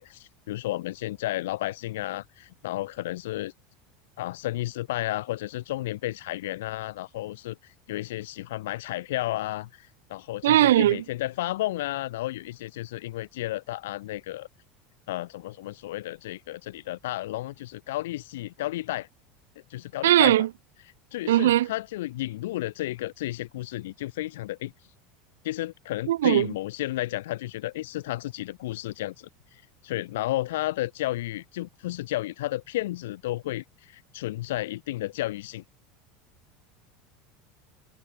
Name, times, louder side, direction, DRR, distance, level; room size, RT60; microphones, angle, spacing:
voice 1, 0.0-3.5 4.2-14.5 15.1-19.1 19.7-20.5 20.8-24.7 25.4-35.6, left 16 dB, 75° left, 2.4 m, -32 dB
voice 2, 10.4-11.0 20.0-20.5 21.3-21.7 26.1-26.5, right 13 dB, 80° right, 0.7 m, -19 dB
hypercardioid pair, 80°, 0 cm